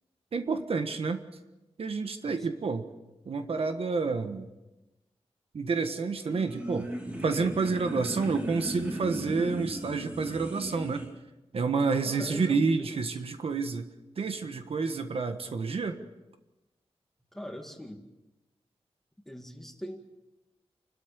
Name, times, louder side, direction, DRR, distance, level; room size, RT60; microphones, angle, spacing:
voice 1, 0.3-1.2 1.8-2.9 3.2-4.5 5.5-6.9 7.2-11.1 11.5-13.9 14.2-16.0, right 4 dB, 65° right, 8 dB, 1.4 m, -29 dB
sound 1, 6.2-11.1, right 1 dB, 15° right, 3.1 m, -37 dB
voice 2, 12.0-13.0 17.3-18.0 19.3-20.0, equal, 5° left, 3 dB, 2.2 m, -41 dB
29.0 x 13.0 x 6.9 m, 1.0 s
wide cardioid pair, 150°, 11 cm